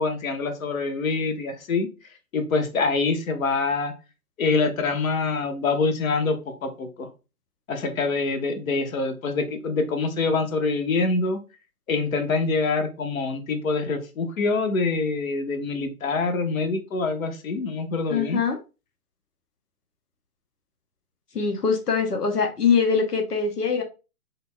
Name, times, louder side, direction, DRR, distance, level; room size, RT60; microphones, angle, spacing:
voice 1, 0.0-1.9 2.3-3.9 4.4-6.4 6.6-7.1 7.7-11.4 11.9-18.4, left 3 dB, 60° left, 7 dB, 0.9 m, -25 dB
voice 2, 18.1-18.6 21.3-23.8, left 5 dB, 90° left, 3 dB, 0.9 m, -23 dB
3.8 x 2.2 x 2.2 m, 0.29 s
figure-of-eight pair, 130°, 45 cm